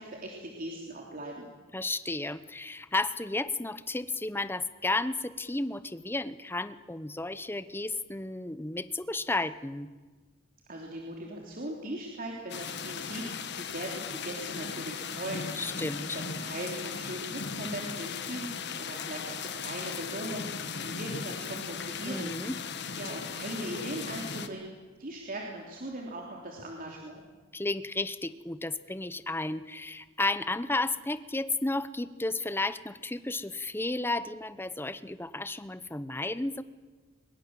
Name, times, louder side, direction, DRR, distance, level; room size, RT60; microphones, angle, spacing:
voice 1, 0.0-1.5 10.7-15.5 16.0-18.5 18.8-20.5 20.8-22.3 23.0-24.6 25.0-27.2, right 1 dB, 45° right, -1 dB, 3.2 m, -39 dB
voice 2, 1.7-9.9 15.6-16.2 22.1-22.6 27.5-36.6, left 2 dB, 10° left, 14 dB, 0.8 m, -33 dB
sound 1, 12.5-24.5, left 6 dB, 60° left, 1.5 m, -37 dB
23.5 x 22.0 x 7.6 m, 1.3 s
head